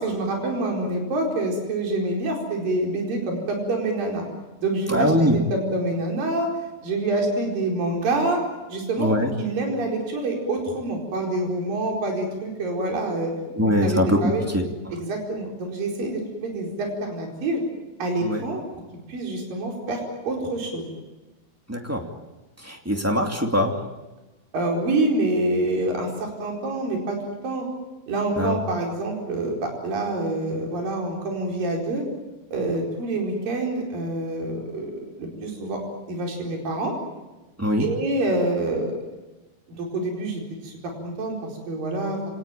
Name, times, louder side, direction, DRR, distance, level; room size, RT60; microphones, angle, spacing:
voice 1, 0.0-4.2 4.6-6.5 6.8-8.4 8.7-9.1 9.4-13.3 13.6-14.5 14.9-17.6 18.0-18.6 19.1-20.9 24.5-27.2 27.4-27.7 28.1-32.0 32.5-34.9 35.2-35.8 36.1-36.9 37.8-39.0 39.7-41.4 41.7-42.2, right 2 dB, 55° right, 0 dB, 6.2 m, -26 dB
voice 2, 4.9-5.3 9.0-9.3 13.5-14.6 18.2-18.4 21.7-22.0 22.6-23.8 28.4-28.6 37.6-37.9, equal, 5° right, 2 dB, 1.3 m, -22 dB
27.5 x 18.5 x 9.1 m, 1.1 s
omnidirectional pair, 4.8 m